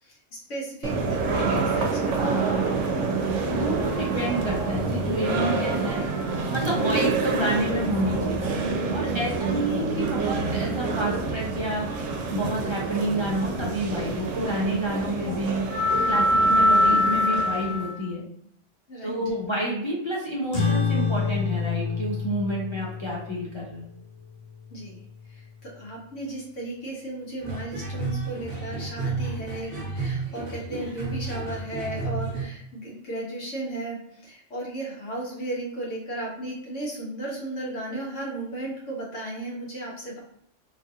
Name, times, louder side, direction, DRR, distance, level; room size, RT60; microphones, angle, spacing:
voice 1, 0.0-2.5 9.1-9.4 18.9-19.1 24.7-25.0 25.3-40.2, right 1 dB, 85° left, -3 dB, 1.4 m, -35 dB
sound 1, 0.8-18.0, right 2 dB, 80° right, 1.0 m, -25 dB
voice 2, 3.5-6.1 6.5-8.5 8.9-15.6 16.0-18.2 19.0-23.9, equal, 40° left, -4 dB, 0.4 m, -29 dB
sound 2, 20.5-25.4, left 5 dB, 55° left, 0.9 m, -29 dB
sound 3, 27.4-32.4, right 3 dB, 30° right, 1.0 m, -32 dB
3.1 x 2.4 x 2.7 m, 0.72 s
omnidirectional pair, 1.2 m